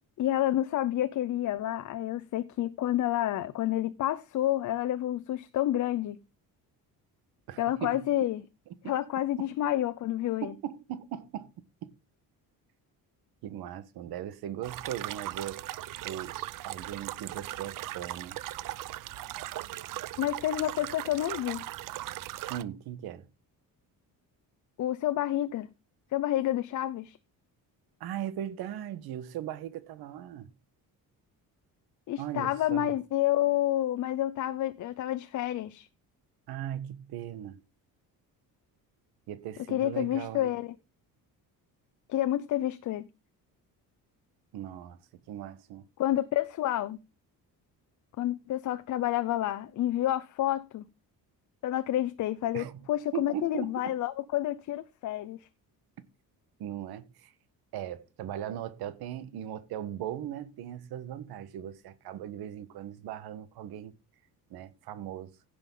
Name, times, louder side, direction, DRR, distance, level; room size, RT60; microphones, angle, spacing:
voice 1, 0.2-6.2 7.6-8.4 8.8-10.5 20.2-21.7 24.8-25.7 26.1-27.2 32.1-35.9 39.7-40.7 42.1-43.1 46.0-47.0 48.2-50.9 51.6-55.4, left 13 dB, 55° left, 0.7 m, -29 dB
voice 2, 7.5-8.1 8.8-8.9 10.4-11.5 11.8-11.9 13.4-15.7 16.0-18.4 22.5-23.3 28.0-30.5 32.2-32.9 36.5-37.6 39.3-40.5 44.5-45.8 52.5-52.8 53.1-53.9 56.6-57.3 57.7-63.9 64.5-65.4, right 11 dB, 85° right, 1.4 m, -38 dB
sound 1, 14.6-22.6, right 15 dB, 60° right, 0.6 m, -38 dB
16.0 x 6.9 x 3.8 m
cardioid pair, 175°, 37 cm